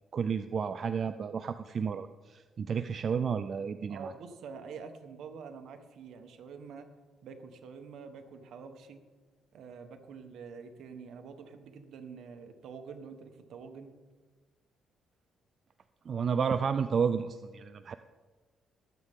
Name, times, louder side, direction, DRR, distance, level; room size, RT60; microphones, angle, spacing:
voice 1, 0.1-4.1 16.1-17.9, right 6 dB, 50° right, 10 dB, 0.5 m, -31 dB
voice 2, 3.9-6.9 7.2-9.0 9.5-13.9, right 5 dB, 75° right, 7 dB, 1.4 m, -46 dB
21.5 x 8.2 x 3.7 m, 1.4 s
cardioid pair, 90°, 0 cm